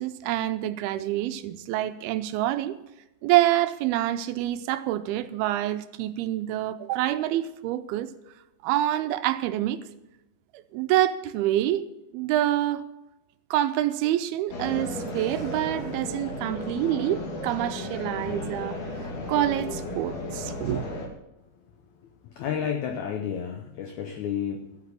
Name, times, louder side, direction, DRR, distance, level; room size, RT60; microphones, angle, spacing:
voice 1, 0.0-2.7 3.2-8.1 8.6-9.8 10.7-11.9 12.1-12.8 13.5-18.8 19.3-20.8, right 13 dB, 80° right, 2.5 m, -26 dB
sound 1, 14.5-21.1, left 1 dB, 60° left, 3.3 m, -34 dB
voice 2, 21.6-24.8, left 8 dB, 85° left, 1.6 m, -32 dB
13.0 x 8.3 x 6.8 m
omnidirectional pair, 4.5 m